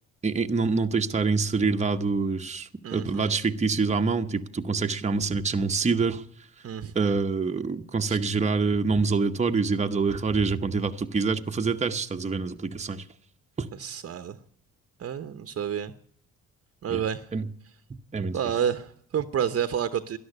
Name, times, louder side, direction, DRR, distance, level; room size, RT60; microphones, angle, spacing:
voice 1, 0.2-6.2 6.9-13.0 13.6-13.7 16.9-17.0 17.3-17.5 18.1-18.4, right 4 dB, 20° right, 5 dB, 0.9 m, -26 dB
voice 2, 2.8-3.3 6.6-7.2 8.1-8.2 13.7-14.4 15.0-15.9 16.8-17.3 18.3-20.2, right 8 dB, 50° right, 10 dB, 0.9 m, -30 dB
13.5 x 11.0 x 9.6 m, 0.63 s
cardioid pair, 90°, 30 cm